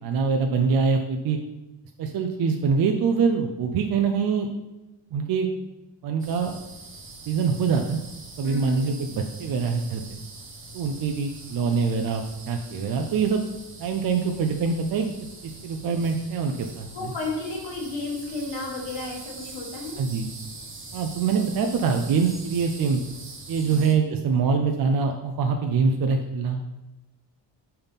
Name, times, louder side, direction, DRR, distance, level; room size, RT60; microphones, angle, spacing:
voice 1, 0.0-1.4 2.0-4.5 5.1-5.5 6.0-6.5 7.3-8.0 8.4-10.2 10.7-13.4 13.8-15.1 15.6-17.1 20.0-20.3 20.9-23.0 23.5-26.6, right 5 dB, 55° right, 3 dB, 0.5 m, -24 dB
sound 1, 6.2-23.9, right 3 dB, 30° right, 0.9 m, -43 dB
voice 2, 8.4-8.9 16.9-20.0 23.6-23.9, left 3 dB, 80° left, -2 dB, 2.0 m, -33 dB
5.6 x 3.5 x 5.6 m, 1.0 s
cardioid pair, 150°, 44 cm